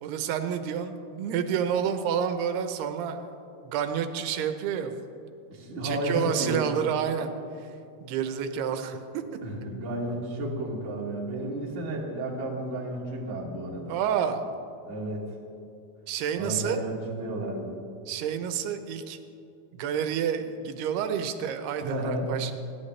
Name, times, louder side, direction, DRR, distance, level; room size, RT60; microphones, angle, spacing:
voice 1, 0.0-3.3 3.6-5.1 5.8-7.3 8.0-9.2 13.9-14.5 16.1-16.8 18.0-19.2 19.7-22.5, right 8 dB, 85° right, 7 dB, 2.9 m, -29 dB
voice 2, 5.5-6.7 9.4-13.9 14.8-15.3 16.4-17.8 21.8-22.3, right 1 dB, 25° right, -3 dB, 1.8 m, -32 dB
29.5 x 11.5 x 3.3 m, 2.6 s
omnidirectional pair, 4.5 m